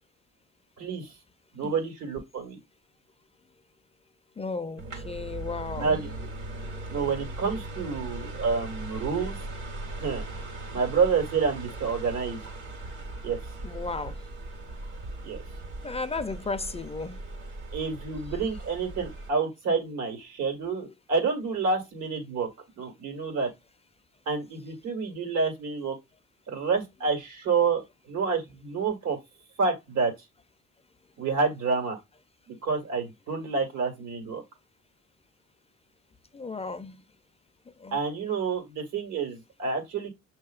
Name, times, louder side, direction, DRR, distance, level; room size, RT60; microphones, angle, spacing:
voice 1, 0.8-1.1 1.5-2.6 5.7-6.3 6.9-9.4 10.0-10.2 10.7-12.4 13.2-13.4 15.2-15.4 17.7-22.5 22.8-23.5 24.3-25.9 26.5-29.2 29.6-30.1 31.2-32.0 32.5-34.4 37.9-40.1, right 5 dB, 85° right, 1.7 m, -28 dB
voice 2, 4.4-6.1 13.6-14.2 15.8-17.2 20.8-20.9 36.3-37.0 37.8-38.0, left 3 dB, 20° left, 0.4 m, -34 dB
sound 1, 4.8-19.3, right 2 dB, 70° right, 1.7 m, -39 dB
6.2 x 2.8 x 2.4 m
cardioid pair, 90°, 30 cm